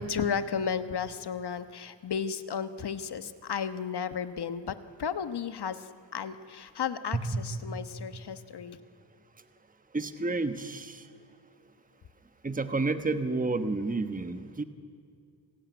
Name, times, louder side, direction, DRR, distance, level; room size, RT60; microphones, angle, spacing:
voice 1, 0.0-8.8, left 7 dB, 60° left, 11 dB, 1.2 m, -34 dB
voice 2, 7.2-7.8 9.9-11.0 12.4-14.6, right 3 dB, 20° right, 9 dB, 1.2 m, -30 dB
28.0 x 16.0 x 9.4 m, 2.4 s
wide cardioid pair, 95°, 45 cm